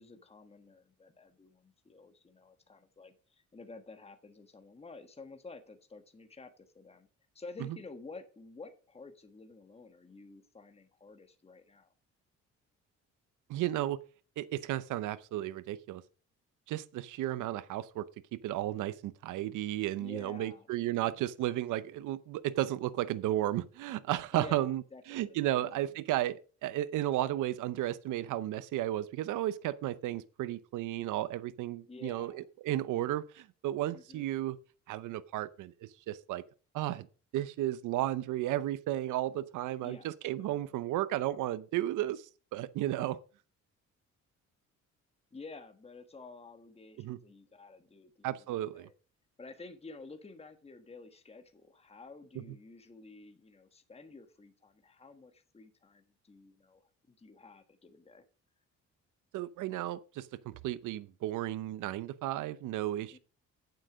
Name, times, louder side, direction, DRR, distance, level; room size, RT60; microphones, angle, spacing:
voice 1, 0.0-7.1 7.3-11.9 20.0-21.2 24.3-25.6 31.8-32.5 33.9-34.3 39.8-40.8 45.3-48.3 48.7-49.0 49.4-58.2 63.1-63.2, left 3 dB, 20° left, 1.4 m, -51 dB
voice 2, 13.5-14.0 14.4-16.0 16.7-18.1 18.3-24.8 25.1-34.6 34.9-36.4 36.7-37.1 37.3-43.2 47.0-47.2 48.2-48.9 59.3-63.2, right 14 dB, 85° right, 0.7 m, -34 dB
9.0 x 7.8 x 5.0 m
cardioid pair, 90°, 30 cm